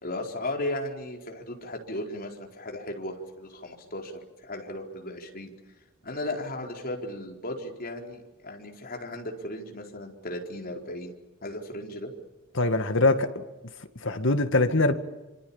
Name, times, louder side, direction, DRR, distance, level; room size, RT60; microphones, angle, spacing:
voice 1, 0.0-5.5 6.0-11.1 11.4-12.1, left 1 dB, 45° left, 4.5 m, -36 dB
voice 2, 12.5-13.4 14.0-14.9, left 2 dB, 60° left, 2.1 m, -23 dB
27.0 x 26.0 x 7.2 m
head